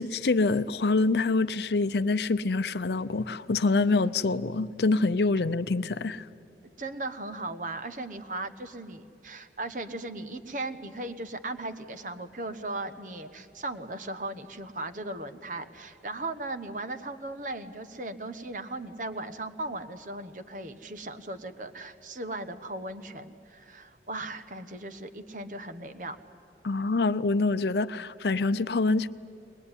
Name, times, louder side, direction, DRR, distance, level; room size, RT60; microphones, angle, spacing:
voice 1, 0.0-6.2 26.6-29.1, left 3 dB, 70° left, 0.6 m, -26 dB
voice 2, 6.8-26.2, right 2 dB, 45° right, 1.1 m, -37 dB
21.5 x 21.0 x 9.7 m
head